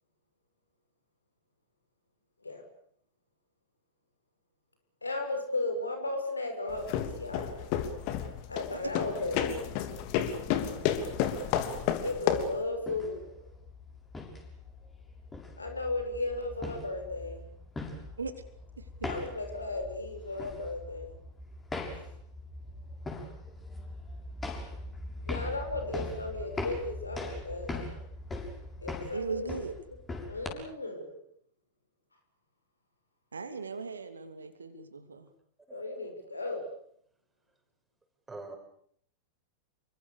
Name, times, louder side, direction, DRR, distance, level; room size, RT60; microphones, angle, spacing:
voice 1, 5.0-7.7 8.5-9.7 12.0-13.4 15.6-17.5 19.0-21.2 25.3-27.9 28.8-29.6 30.2-31.2 35.7-36.7, left 2 dB, 80° left, 6 dB, 6.4 m, -35 dB
sound 1, 6.7-12.6, left 9 dB, 45° left, 3.1 m, -31 dB
sound 2, 12.7-30.5, left 2 dB, 15° left, 6.9 m, -41 dB
voice 2, 29.1-29.7 33.3-35.3, right 5 dB, 75° right, 9 dB, 2.9 m, -38 dB
voice 3, 35.7-36.1 36.4-36.6 38.3-38.6, right 3 dB, 10° right, 6 dB, 6.1 m, -44 dB
28.5 x 24.5 x 7.0 m, 0.65 s
figure-of-eight pair, 90°, 0 cm